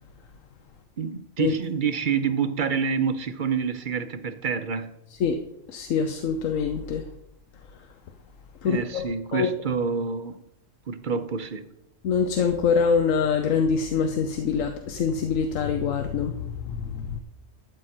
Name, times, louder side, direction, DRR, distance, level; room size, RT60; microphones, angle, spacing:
voice 1, 1.0-4.9 8.6-10.4 10.9-11.7, right 6 dB, 50° right, 0.7 m, -27 dB
voice 2, 5.7-7.0 8.6-9.5 12.0-17.2, left 6 dB, 85° left, 1.1 m, -25 dB
12.5 x 7.7 x 4.3 m
omnidirectional pair, 1.3 m